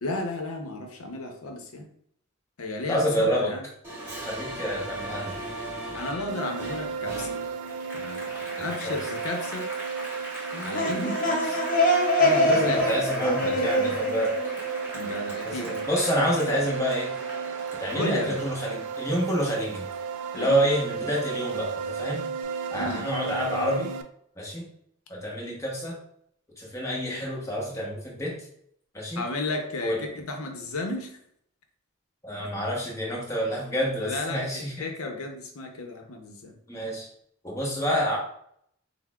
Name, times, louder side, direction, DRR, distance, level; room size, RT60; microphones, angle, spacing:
voice 1, 0.0-1.9 2.6-3.6 5.9-7.3 7.9-9.7 10.6-11.2 12.1-13.0 14.9-15.7 17.9-18.4 20.3-20.6 22.7-23.1 29.2-31.2 34.0-36.6, left 2 dB, 80° left, 4 dB, 0.6 m, -33 dB
voice 2, 2.9-3.5 4.2-5.3 8.6-9.0 11.3-11.4 12.2-14.3 15.4-17.1 17.8-19.9 20.3-22.2 22.7-23.9 24.4-24.7 25.1-26.0 26.6-28.3 28.9-29.2 29.8-30.0 32.2-34.9 36.7-37.1 37.4-38.2, equal, 15° left, -3 dB, 0.8 m, -28 dB
Applause, 3.8-20.7 21.1-22.2, right 1 dB, 10° right, 0.9 m, -39 dB
sound 1, 6.3-24.0, right 6 dB, 80° right, 0.3 m, -33 dB
sound 2, 10.5-15.3, left 1 dB, 40° left, 0.5 m, -25 dB
5.6 x 2.0 x 2.3 m, 0.68 s
head